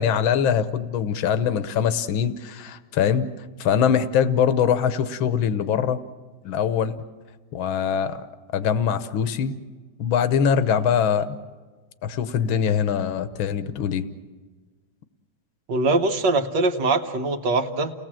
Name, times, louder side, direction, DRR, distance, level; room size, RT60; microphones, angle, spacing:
voice 1, 0.0-3.3 3.6-6.0 6.4-7.0 7.5-8.2 8.5-9.5 10.0-11.4 12.0-14.1, left 8 dB, 80° left, 12 dB, 1.7 m, -22 dB
voice 2, 15.7-17.9, right 3 dB, 65° right, 6 dB, 1.8 m, -22 dB
30.0 x 18.0 x 7.6 m, 1.4 s
omnidirectional pair, 2.2 m